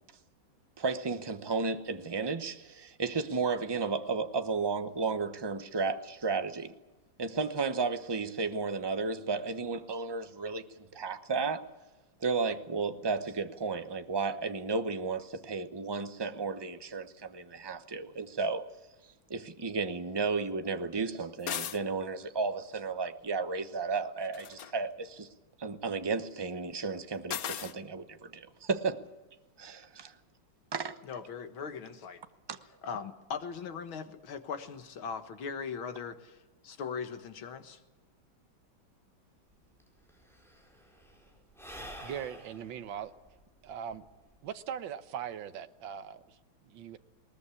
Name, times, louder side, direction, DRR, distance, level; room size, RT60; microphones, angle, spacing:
voice 1, 0.8-2.5 3.0-6.0 6.2-6.6 7.2-10.6 11.0-11.6 12.2-15.2 15.5-17.0 17.6-18.6 19.3-24.4 24.7-24.9 25.6-27.4 27.9-28.0 28.7-29.0 30.7-30.9, right 4 dB, 35° right, 0.4 m, -32 dB
sound 1, 21.4-21.8 24.2-24.7 27.3-27.8, left 9 dB, 55° left, 1.1 m, -36 dB
voice 2, 31.0-32.2 32.8-37.8, left 6 dB, 80° left, 2.3 m, -39 dB
Sigh / Breathing, 39.5-39.6 39.8-44.5, equal, ahead, 4.8 m, -49 dB
voice 3, 42.0-43.1 43.6-44.1 44.4-47.0, right 8 dB, 70° right, 1.8 m, -40 dB
20.5 x 20.0 x 8.4 m
omnidirectional pair, 2.2 m